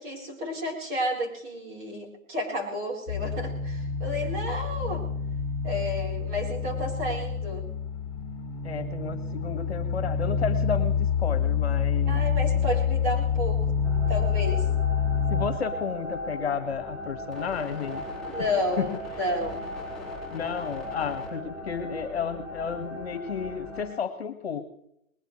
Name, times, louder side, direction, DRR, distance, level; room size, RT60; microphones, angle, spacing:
voice 1, 0.0-5.1 5.6-7.6 12.1-13.6 14.1-14.7 18.2-19.6, left 1 dB, 20° right, -2 dB, 4.3 m, -31 dB
sound 1, 3.1-15.4, left 7 dB, 25° left, 4.1 m, -27 dB
voice 2, 8.6-12.2 15.3-18.0 18.8-19.0 20.3-24.7, left 6 dB, 50° left, 8 dB, 2.1 m, -32 dB
sound 2, 13.8-23.9, left 1 dB, ahead, 6.0 m, -37 dB
21.0 x 20.5 x 3.3 m, 0.76 s
hypercardioid pair, 155°, 41 cm